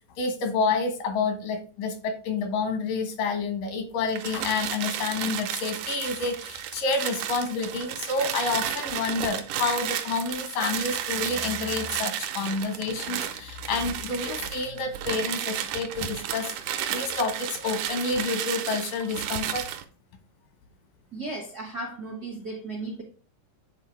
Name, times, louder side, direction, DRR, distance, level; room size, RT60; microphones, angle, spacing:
voice 1, 0.2-19.6, left 4 dB, 85° left, 4 dB, 3.0 m, -29 dB
sound 1, 4.1-19.8, right 10 dB, 80° right, 2.1 m, -33 dB
voice 2, 21.1-23.0, right 2 dB, 65° right, -1 dB, 0.9 m, -35 dB
8.2 x 3.9 x 3.2 m, 0.38 s
omnidirectional pair, 3.7 m